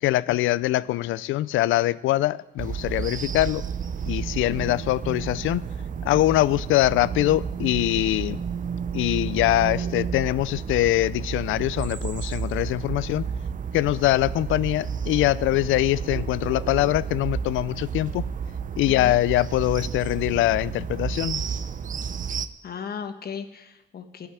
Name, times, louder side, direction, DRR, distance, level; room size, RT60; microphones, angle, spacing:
voice 1, 0.0-3.6 4.1-5.6 6.0-8.4 8.9-13.3 13.7-18.2 18.8-21.4, left 16 dB, 85° left, 0.4 m, -23 dB
sound 1, 2.6-22.5, right 6 dB, 40° right, 0.6 m, -31 dB
voice 2, 18.9-19.2 22.6-24.3, left 7 dB, 50° left, 1.3 m, -36 dB
14.0 x 5.7 x 9.4 m
cardioid pair, 90°, 20 cm